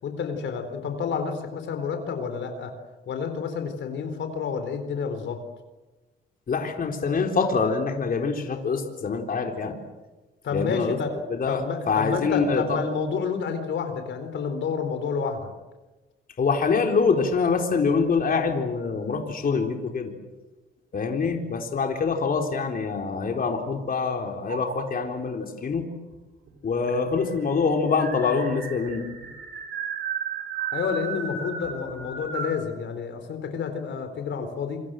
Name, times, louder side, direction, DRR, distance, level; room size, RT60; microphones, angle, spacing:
voice 1, 0.0-2.7 3.1-5.4 10.4-11.2 11.4-15.5 30.7-34.8, left 5 dB, 70° left, 7 dB, 4.1 m, -29 dB
voice 2, 6.5-9.7 10.5-11.0 11.3-12.8 16.4-20.1 20.9-25.9 26.6-29.0, left 5 dB, 45° left, 3 dB, 4.0 m, -25 dB
sound 1, 22.6-24.0 24.5-25.1 26.1-26.2 26.5-26.6 26.9-32.6, right 6 dB, 65° right, 6.8 m, -35 dB
28.0 x 23.5 x 7.8 m, 1.2 s
cardioid pair, 90°, 20 cm